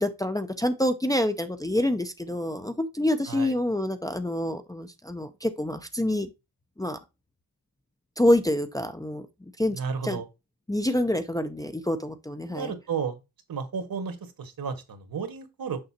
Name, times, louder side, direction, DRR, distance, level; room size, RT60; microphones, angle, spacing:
voice 1, 0.0-6.3 6.8-7.0 8.2-9.3 9.6-10.2 10.7-12.7, left 1 dB, 10° left, 0.6 m, -27 dB
voice 2, 3.3-3.6 9.7-10.3 12.5-13.2 13.5-15.8, right 6 dB, 60° right, 1.8 m, -33 dB
6.7 x 5.5 x 2.8 m
cardioid pair, 90°, 39 cm